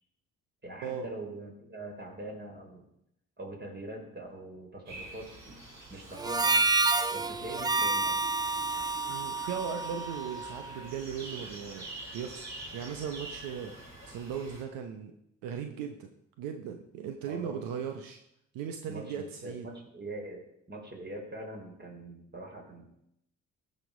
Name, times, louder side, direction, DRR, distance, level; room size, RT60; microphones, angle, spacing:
voice 1, 0.6-2.8 3.4-5.6 5.9-6.7 7.1-8.1 17.3-17.6 18.9-20.4 20.7-22.9, right 2 dB, 30° right, 1 dB, 3.7 m, -43 dB
sound 1, 4.9-14.6, right 2 dB, 55° right, 3.6 m, -47 dB
Harmonica, 6.2-10.8, right 3 dB, 10° right, 0.4 m, -29 dB
sound 2, 7.1-14.1, left 2 dB, 35° left, 1.6 m, -52 dB
voice 2, 9.1-11.9 12.1-12.5 12.7-13.7 14.1-15.1 15.4-16.1 16.4-18.2 18.5-19.7, right 7 dB, 80° right, 5 dB, 0.9 m, -37 dB
14.5 x 5.4 x 5.0 m, 0.77 s
hypercardioid pair, 55°, 33 cm